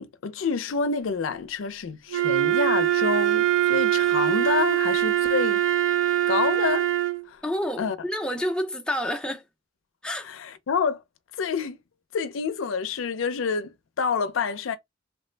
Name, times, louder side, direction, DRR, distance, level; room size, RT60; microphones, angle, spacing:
voice 1, 0.0-5.6 6.3-6.9 7.3-7.4 7.8-8.0 10.2-11.0 11.4-11.8 12.1-14.8, left 5 dB, 85° left, 0.5 m, -28 dB
Wind instrument woodwind instrument, 2.1-7.3, right 12 dB, 85° right, 0.5 m, -23 dB
voice 2, 7.4-9.4 10.0-10.3, equal, 5° left, 0.4 m, -29 dB
3.1 x 2.0 x 3.2 m
head